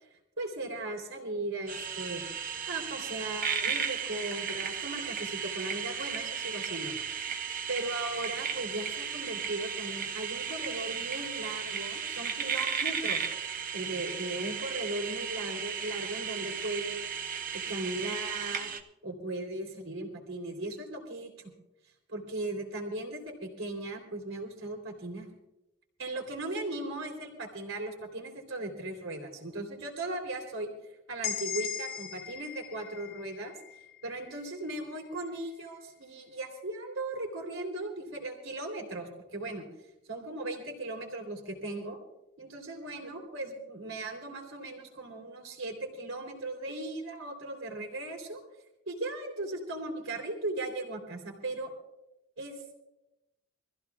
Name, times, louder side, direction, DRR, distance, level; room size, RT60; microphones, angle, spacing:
voice 1, 0.4-2.2 2.7-7.0 7.7-13.3 13.7-17.1 17.7-18.7 19.0-21.5 22.1-25.3 26.0-30.7 31.1-33.5 34.0-39.7 40.1-42.0 42.4-48.4 48.9-51.7 52.4-52.5, right 2 dB, 75° right, 2 dB, 3.5 m, -37 dB
sound 1, 1.7-18.8, right 7 dB, 40° right, 1.0 m, -35 dB
sound 2, 31.2-35.0, left 8 dB, 45° left, 0.8 m, -39 dB
25.0 x 15.0 x 2.4 m, 0.93 s
head